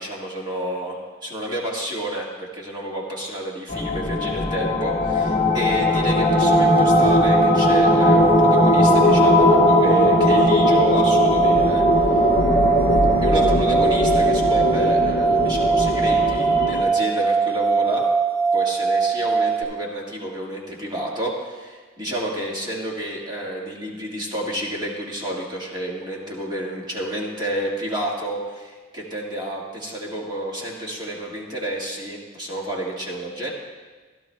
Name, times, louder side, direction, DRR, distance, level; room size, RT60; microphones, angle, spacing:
voice 1, 0.0-12.3 13.2-18.0 18.5-33.5, right 1 dB, 20° right, -3 dB, 1.7 m, -30 dB
sound 1, 3.7-16.8, left 2 dB, 30° left, 0.9 m, -19 dB
sound 2, 6.2-19.6, right 5 dB, 45° right, 3.1 m, -21 dB
16.0 x 12.0 x 2.2 m, 1.4 s
head